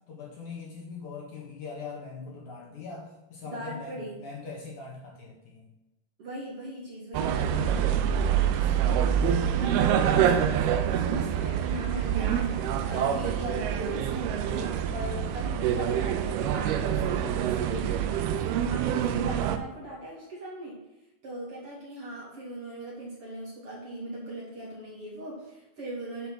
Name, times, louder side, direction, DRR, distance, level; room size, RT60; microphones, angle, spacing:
voice 1, 0.1-5.7, left 4 dB, 55° left, -3 dB, 2.7 m, -41 dB
voice 2, 3.4-4.2 6.2-20.8 21.2-26.3, equal, 40° right, -4 dB, 2.7 m, -39 dB
sound 1, 7.1-19.6, right 9 dB, 85° right, 2.6 m, -26 dB
7.5 x 6.8 x 6.2 m, 0.95 s
omnidirectional pair, 4.6 m